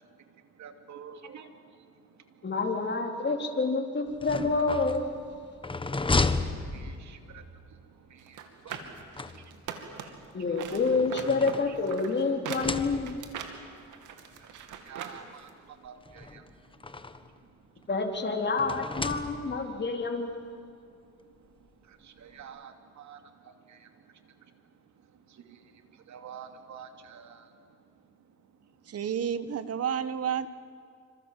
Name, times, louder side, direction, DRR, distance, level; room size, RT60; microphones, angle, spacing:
voice 1, 0.6-1.5 6.7-7.4 8.1-8.4 8.6-8.8 9.4-10.1 10.7-10.8 14.4-15.5 15.8-16.4 21.9-23.9 25.3-25.6 26.1-27.5, right 7 dB, 70° right, 6 dB, 2.7 m, -48 dB
voice 2, 2.4-5.2 10.3-13.2 17.9-20.6, left 3 dB, 35° left, 3 dB, 3.8 m, -28 dB
sound 1, 4.1-7.4 8.7-9.8 10.7-12.1 12.4-13.4 14.3-14.4 14.7-14.8 16.0-17.4 18.6-19.7, left 3 dB, 15° left, 1.4 m, -33 dB
sound 2, 8.3-10.3 10.5-15.2 15.5-15.6, right 8 dB, 90° right, 2.7 m, -41 dB
voice 3, 28.9-30.5, right 8 dB, 50° right, 13 dB, 1.4 m, -30 dB
27.5 x 26.0 x 7.7 m, 2.4 s
cardioid pair, 90°, 30 cm